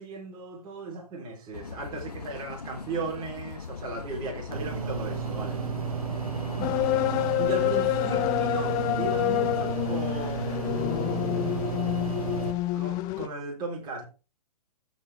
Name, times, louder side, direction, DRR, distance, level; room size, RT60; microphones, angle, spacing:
voice 1, 0.0-5.6 6.6-6.9 7.4-11.4 12.7-14.1, right 2 dB, 20° right, 3.7 m, -36 dB
sound 1, 1.5-7.3, left 5 dB, 75° left, 0.9 m, -40 dB
sound 2, 4.5-12.5, right 7 dB, 60° right, 1.4 m, -33 dB
sound 3, 6.6-13.3, left 15 dB, 20° left, 0.4 m, -27 dB
15.5 x 5.3 x 3.4 m
figure-of-eight pair, 120°, 20 cm